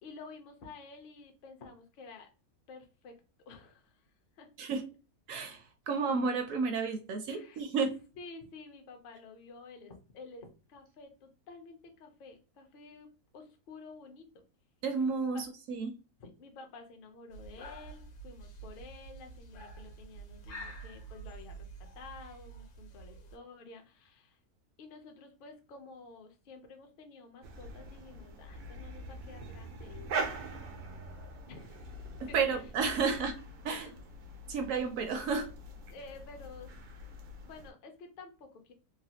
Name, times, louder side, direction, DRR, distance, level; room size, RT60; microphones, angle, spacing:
voice 1, 0.0-2.3 2.7-3.2 3.5-4.0 4.4-4.5 7.3-7.6 8.2-13.1 13.3-14.3 15.3-15.4 16.2-21.7 21.9-24.4 24.8-30.5 31.5-32.7 33.8-34.0 35.9-36.9 37.4-38.7, left 3 dB, 55° left, 4 dB, 0.6 m, -51 dB
voice 2, 5.3-7.9 14.8-15.9 32.2-33.4 33.6-33.9 34.5-35.5, right 5 dB, 70° right, 6 dB, 0.9 m, -32 dB
sound 1, 17.3-23.4, right 3 dB, 80° left, 1.3 m, -48 dB
sound 2, 27.4-37.7, right 3 dB, 90° right, 1.2 m, -43 dB
3.2 x 2.2 x 2.7 m, 0.32 s
omnidirectional pair, 1.6 m